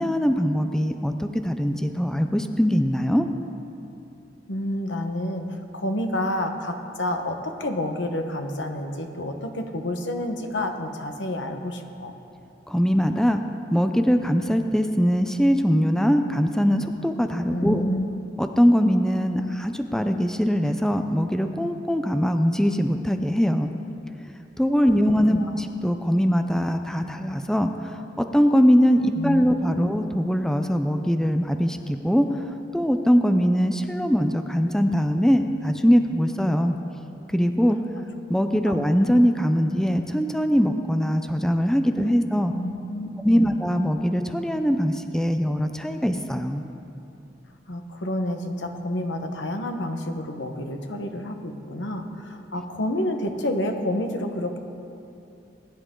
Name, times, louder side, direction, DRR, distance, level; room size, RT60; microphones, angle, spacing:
voice 1, 0.0-3.3 12.7-13.4 13.7-17.8 18.4-23.7 24.6-36.8 37.3-37.8 38.3-42.5 43.2-46.6, equal, 5° left, 6 dB, 0.5 m, -22 dB
voice 2, 4.5-12.1 17.5-18.1 25.3-25.5 29.1-29.9 37.9-38.0 38.7-38.8 41.9-42.2 42.5-43.5 47.7-54.6, left 1 dB, 80° left, 5 dB, 1.2 m, -29 dB
20.5 x 10.5 x 3.8 m, 2.7 s
head